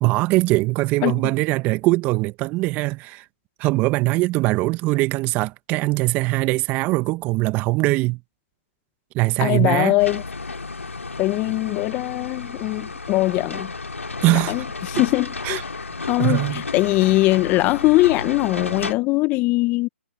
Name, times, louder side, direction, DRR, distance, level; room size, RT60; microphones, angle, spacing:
voice 1, 0.0-3.2 3.6-8.2 9.1-10.0 14.2-14.5 15.4-15.6 16.2-16.6, right 21 dB, 20° right, 1.4 m, -21 dB
voice 2, 9.4-10.2 11.2-13.7 14.3-15.7 16.1-19.9, left 20 dB, 20° left, 1.3 m, -21 dB
sound 1, 10.0-18.9, left 3 dB, 85° left, 4.2 m, -32 dB
figure-of-eight pair, 140°, 7 cm